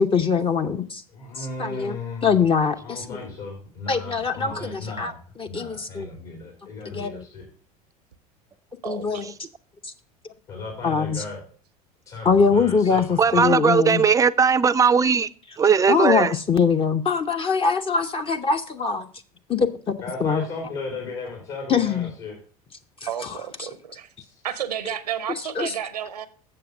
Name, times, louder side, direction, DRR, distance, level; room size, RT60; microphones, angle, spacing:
voice 1, 0.0-1.0 1.4-3.2 3.9-5.1 5.4-6.1 6.9-7.2 8.8-9.3 10.8-11.2 12.2-14.0 15.9-19.1 19.5-20.4 21.7-22.1 23.0-23.4 25.6-25.7, left 5 dB, 30° left, 0.7 m, -23 dB
voice 2, 1.1-2.3 2.8-5.2 5.4-7.4 10.5-11.4 12.1-13.5 20.0-22.4, left 3 dB, 60° left, 3.3 m, -36 dB
voice 3, 8.8-9.3 23.1-24.1 24.4-26.3, right 10 dB, 90° right, 0.8 m, -31 dB
voice 4, 13.2-15.3 15.6-16.3, right 6 dB, 15° right, 0.4 m, -18 dB
7.6 x 6.9 x 5.2 m
hypercardioid pair, 80°, 20 cm